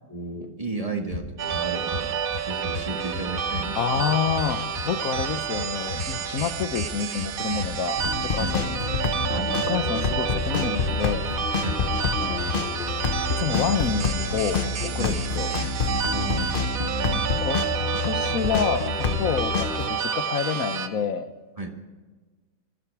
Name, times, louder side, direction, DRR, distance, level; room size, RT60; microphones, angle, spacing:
voice 1, 0.1-2.1 2.4-4.0 6.1-6.3 8.4-8.6 9.3-9.6 11.6-11.8 15.0-15.2 16.1-17.4 19.1-19.3 21.6-21.7, right 3 dB, 25° right, 3 dB, 1.7 m, -34 dB
sound 1, 1.1-1.6 1.9-2.8 3.1-4.9 5.2-6.1 6.4-8.1 8.4-9.3 9.6-11.4 11.7-12.6 12.9-14.1, left 4 dB, 65° left, 2.4 m, -34 dB
sound 2, 1.4-20.9, right 8 dB, 85° right, 1.4 m, -30 dB
voice 2, 3.8-8.0 8.3-8.8 9.3-11.3 12.0-12.7 13.4-15.5 17.4-17.6 18.0-21.3, left 7 dB, 80° left, 10 dB, 1.4 m, -28 dB
sound 3, 8.0-19.9, left 5 dB, 45° left, 0.9 m, -28 dB
20.0 x 14.0 x 4.8 m, 1.3 s
omnidirectional pair, 1.4 m